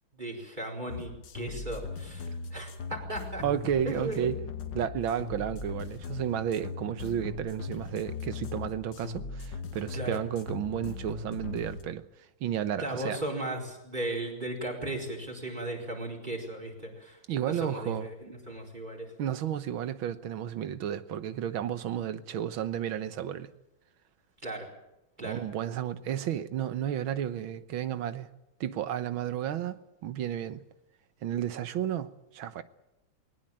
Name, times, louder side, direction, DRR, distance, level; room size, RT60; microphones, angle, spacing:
voice 1, 0.1-3.4 3.8-4.3 9.9-10.2 12.8-17.2 17.5-19.1 24.4-24.7 25.2-25.4, right 1 dB, 20° right, 4.7 m, -36 dB
sound 1, 0.9-11.8, left 4 dB, 65° left, 1.8 m, -39 dB
voice 2, 3.4-4.4 4.7-12.0 12.4-13.2 17.3-18.1 19.2-23.5 25.2-28.3 28.6-30.6 31.2-32.6, right 10 dB, 80° right, 1.8 m, -32 dB
20.5 x 19.0 x 8.9 m
omnidirectional pair, 2.2 m